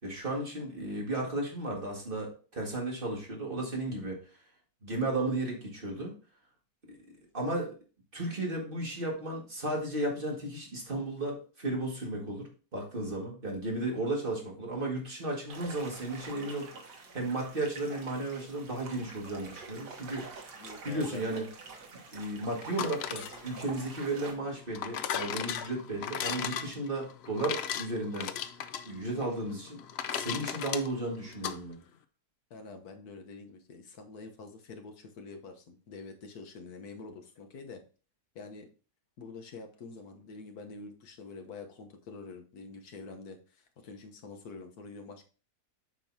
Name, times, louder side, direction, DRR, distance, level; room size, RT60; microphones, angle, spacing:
voice 1, 0.0-4.2 4.8-6.1 6.9-7.0 7.3-7.7 8.1-20.6 20.8-21.5 22.1-28.3 28.9-29.8 30.1-31.8, right 2 dB, 30° right, -1 dB, 2.1 m, -34 dB
sound 1, 15.5-24.3, right 4 dB, 90° right, 1.9 m, -47 dB
voice 2, 20.5-21.4 32.5-37.8 38.3-38.7 39.2-45.2, left 4 dB, 70° left, 5 dB, 1.6 m, -46 dB
sound 2, 22.6-31.6, left 8 dB, 85° left, 0.5 m, -37 dB
8.1 x 5.3 x 2.7 m, 0.37 s
omnidirectional pair, 1.7 m